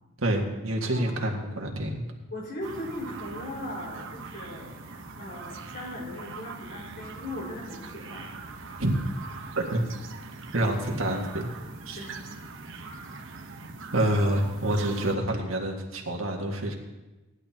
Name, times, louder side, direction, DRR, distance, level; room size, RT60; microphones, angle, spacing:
voice 1, 0.2-2.1 8.8-8.9 9.6-9.8 10.5-11.5 11.9-12.1 13.9-16.8, right 1 dB, 80° right, 1 dB, 1.9 m, -27 dB
voice 2, 0.9-1.2 2.3-4.8 5.2-8.3 11.9-12.2, left 1 dB, 55° left, -3 dB, 4.9 m, -38 dB
sound 1, 2.6-15.1, right 3 dB, 65° right, 1.1 m, -42 dB
18.0 x 11.5 x 2.9 m, 1.1 s
head